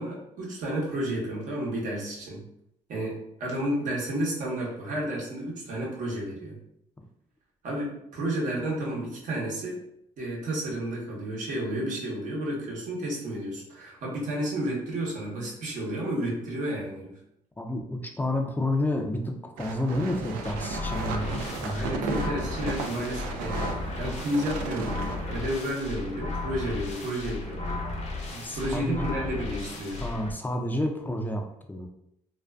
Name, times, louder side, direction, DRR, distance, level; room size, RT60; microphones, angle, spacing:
voice 1, 0.0-2.4 2.9-6.6 7.6-9.8 10.2-17.2 21.7-27.9 28.3-30.0, right 1 dB, 65° right, -3 dB, 0.9 m, -31 dB
voice 2, 17.6-21.9 28.4-29.2 30.0-31.4 31.7-31.9, left 1 dB, 15° left, 3 dB, 0.4 m, -30 dB
sound 1, 19.6-25.6, right 4 dB, 90° right, 0.4 m, -35 dB
sound 2, 20.4-30.3, left 3 dB, 55° left, 0.6 m, -35 dB
2.4 x 2.3 x 2.2 m, 0.77 s
cardioid pair, 90°, 14 cm